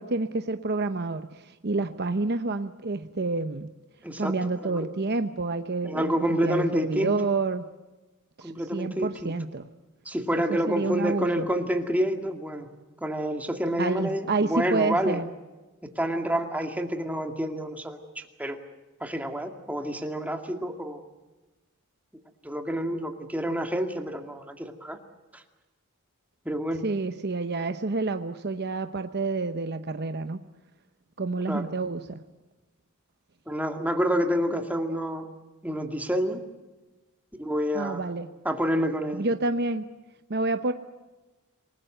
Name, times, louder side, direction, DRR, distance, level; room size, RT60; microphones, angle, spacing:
voice 1, 0.0-3.7 4.2-7.7 8.4-9.6 10.5-11.5 13.8-15.3 26.8-30.4 31.2-32.2 37.7-38.3 39.1-39.8 40.3-40.7, right 3 dB, 50° right, 8 dB, 0.9 m, -29 dB
voice 2, 4.0-4.4 4.6-4.9 5.8-7.1 8.4-9.3 10.1-12.7 13.0-15.2 16.0-18.6 19.0-21.0 22.4-25.0 25.3-25.4 26.5-26.8 31.5-31.7 33.5-35.3 35.6-36.4 37.4-38.0 38.4-39.3, equal, 5° right, 4 dB, 2.2 m, -28 dB
28.0 x 19.0 x 7.9 m, 1.2 s
head